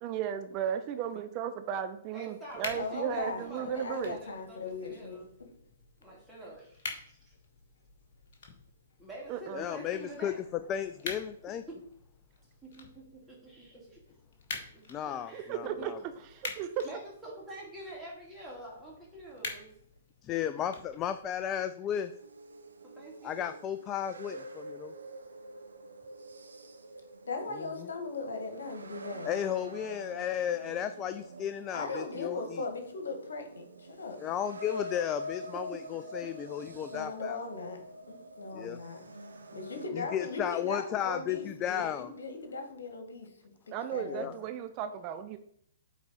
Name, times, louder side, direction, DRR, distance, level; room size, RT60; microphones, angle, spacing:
voice 1, 0.0-4.2 9.3-9.6 15.1-15.9 16.3-16.9 43.7-45.4, right 9 dB, 35° right, 9 dB, 0.5 m, -35 dB
voice 2, 2.1-5.3 6.0-7.3 9.0-10.4 11.5-11.8 12.6-14.0 14.7-14.8 15.2-19.7 22.8-23.6 35.5-36.8, right 1 dB, 5° right, -6 dB, 2.9 m, -47 dB
sound 1, 2.5-21.5, left 4 dB, 50° left, 1.7 m, -47 dB
voice 3, 2.8-5.2 27.2-29.3 31.7-34.2 36.8-37.8 38.1-39.0 39.5-43.3 43.9-44.3, left 3 dB, 70° left, 4 dB, 1.7 m, -38 dB
voice 4, 9.5-10.3 10.7-11.6 14.9-16.0 20.2-22.1 23.2-24.9 27.5-27.7 29.2-32.6 34.2-37.4 38.5-38.8 40.1-42.1 44.0-44.3, left 10 dB, 25° left, 10 dB, 0.4 m, -34 dB
sound 2, 21.9-39.9, equal, 75° right, 0.8 m, -46 dB
8.3 x 4.0 x 4.3 m, 0.67 s
figure-of-eight pair, 120°, 0 cm